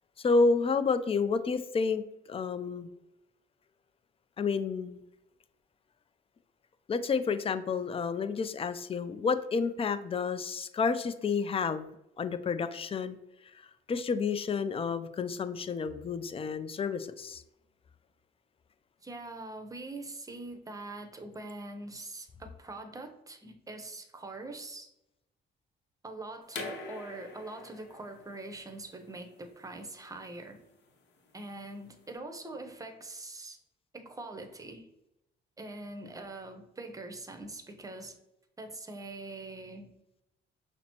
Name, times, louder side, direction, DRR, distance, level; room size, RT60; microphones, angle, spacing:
voice 1, 0.2-2.0 2.3-2.9 4.4-5.0 6.9-11.9 12.2-13.2 13.9-17.4, left 4 dB, 30° left, 12 dB, 0.3 m, -30 dB
voice 2, 19.0-24.9 26.0-30.6 31.3-33.6 33.9-34.9 35.6-38.1 38.6-39.9, right 2 dB, 15° right, 5 dB, 0.7 m, -43 dB
sound 1, 26.5-32.1, left 4 dB, 65° left, 0.8 m, -46 dB
5.8 x 2.0 x 2.9 m, 0.88 s
cardioid pair, 90°, 20 cm